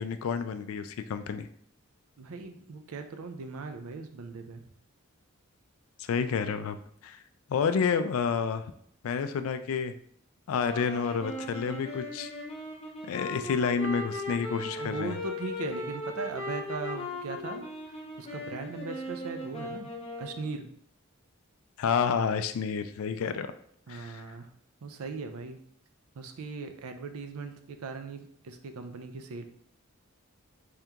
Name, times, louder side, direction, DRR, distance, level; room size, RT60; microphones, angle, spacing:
voice 1, 0.0-1.5 6.0-6.8 7.0-7.2 7.5-8.6 9.0-9.9 10.5-12.3 13.0-15.2 21.8-23.5 23.9-24.2, left 6 dB, 70° left, 10 dB, 0.3 m, -29 dB
voice 2, 2.2-4.6 14.8-17.6 18.2-19.9 20.2-20.6 23.9-24.5 24.8-25.6 26.2-29.4, right 4 dB, 75° right, 7 dB, 0.4 m, -39 dB
sound 1, 10.5-20.5, left 2 dB, 25° left, 0.6 m, -38 dB
3.5 x 2.8 x 3.5 m, 0.66 s
head